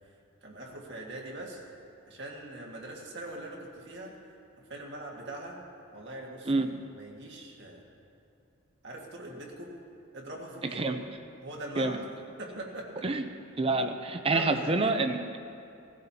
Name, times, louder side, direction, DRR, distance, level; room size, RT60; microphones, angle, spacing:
voice 1, 0.4-1.6 2.1-4.1 4.7-5.6 5.9-7.8 8.8-9.7 10.1-10.9 11.4-12.0 12.4-13.1 14.3-14.9, right 1 dB, 55° right, -2 dB, 1.8 m, -42 dB
voice 2, 13.6-15.4, right 3 dB, 25° right, 7 dB, 0.5 m, -27 dB
17.5 x 16.0 x 2.8 m, 2.6 s
head